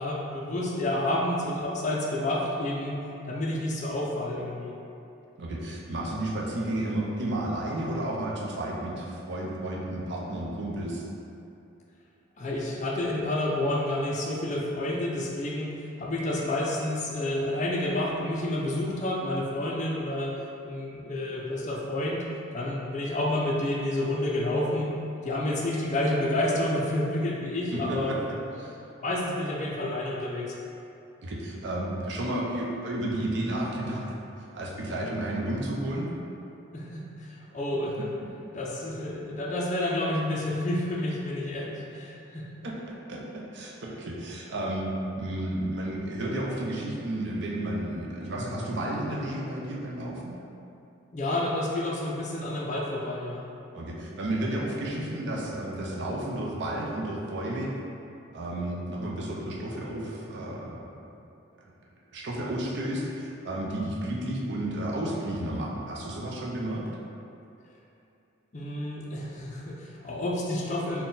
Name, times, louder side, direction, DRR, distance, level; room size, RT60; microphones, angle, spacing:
voice 1, 0.0-3.0 3.3-4.7 12.4-20.4 20.6-22.2 22.5-24.9 25.2-28.1 29.0-30.6 36.7-38.1 38.5-42.5 51.1-53.4 68.5-71.0, left 1 dB, 35° left, -3 dB, 0.4 m, -29 dB
voice 2, 5.4-11.0 27.7-28.2 28.6-28.8 31.2-34.2 34.5-36.1 42.6-42.7 43.1-50.3 53.7-57.7 58.3-60.9 61.6-61.7 62.1-66.8, right 1 dB, 55° right, -3 dB, 0.5 m, -32 dB
4.0 x 2.2 x 3.8 m, 2.7 s
head